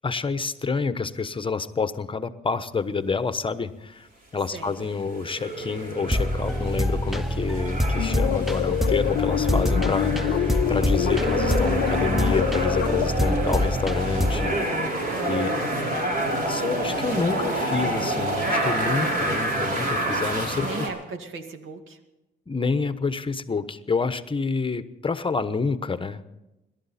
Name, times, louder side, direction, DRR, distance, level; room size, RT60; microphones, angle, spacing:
voice 1, 0.0-10.4 10.7-14.9 15.3-15.5 16.5-20.9 22.5-26.3, left 4 dB, 25° left, 12 dB, 1.0 m, -28 dB
sound 1, 4.8-20.9, right 1 dB, 45° right, 4.7 m, -28 dB
sound 2, 6.1-14.5, left 1 dB, ahead, 0.8 m, -26 dB
sound 3, 7.9-13.1, left 15 dB, 70° left, 0.4 m, -27 dB
voice 2, 15.1-17.1 17.8-18.1 18.8-19.2 20.6-22.0, right 4 dB, 80° right, 6 dB, 2.1 m, -39 dB
26.5 x 12.5 x 4.3 m, 0.96 s
cardioid pair, 90°, 20 cm